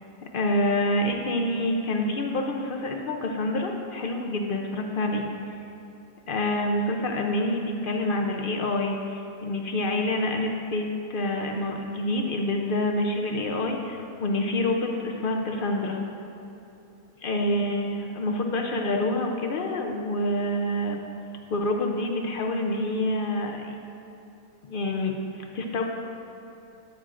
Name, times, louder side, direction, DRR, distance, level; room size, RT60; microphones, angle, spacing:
voice 1, 0.3-5.3 6.3-16.0 17.2-21.0 21.5-23.8 24.6-25.8, left 1 dB, 60° left, 2 dB, 0.5 m, -27 dB
10.5 x 9.6 x 2.5 m, 2.9 s
omnidirectional pair, 1.6 m